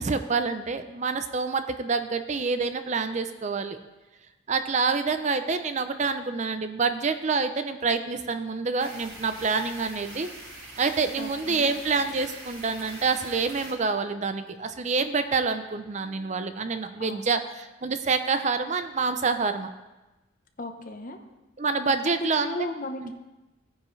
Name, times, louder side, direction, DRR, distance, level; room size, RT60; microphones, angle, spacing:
voice 1, 0.0-3.8 4.5-10.3 10.8-19.7 21.6-22.7 23.0-23.1, right 4 dB, 35° right, 9 dB, 0.5 m, -27 dB
sound 1, 8.8-13.7, right 1 dB, 80° right, 4.2 m, -44 dB
voice 2, 11.2-11.7 17.0-17.3 20.6-21.2 22.1-23.1, left 2 dB, 40° left, 5 dB, 0.9 m, -35 dB
17.0 x 9.5 x 3.2 m, 1.1 s
head